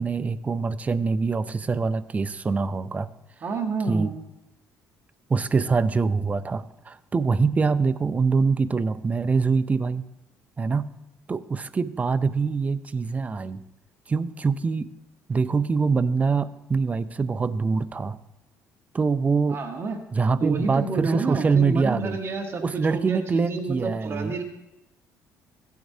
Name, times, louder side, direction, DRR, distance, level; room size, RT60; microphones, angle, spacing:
voice 1, 0.0-3.1 3.9-4.1 5.3-10.0 10.6-10.9 11.3-13.6 14.1-14.9 15.3-18.2 18.9-19.6 20.1-22.2 22.6-24.3, right 4 dB, 25° right, 13 dB, 0.4 m, -24 dB
voice 2, 3.4-4.1 19.5-20.0 20.4-22.6 22.9-24.4, right 4 dB, 40° right, 5 dB, 1.1 m, -29 dB
15.0 x 9.4 x 2.7 m, 0.91 s
cardioid pair, 110°, 6 cm